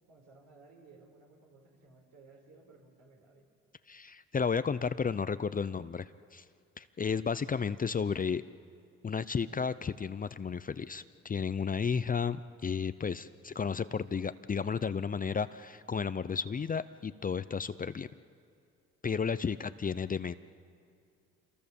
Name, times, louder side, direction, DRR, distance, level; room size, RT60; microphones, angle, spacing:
voice 1, 0.1-3.5, right 3 dB, 65° right, 1 dB, 5.1 m, -58 dB
voice 2, 3.9-6.4 6.8-8.4 9.0-18.1 19.0-20.3, left 6 dB, 25° left, 14 dB, 0.6 m, -33 dB
27.5 x 22.5 x 7.1 m, 2.3 s
supercardioid pair, 70°, 32 cm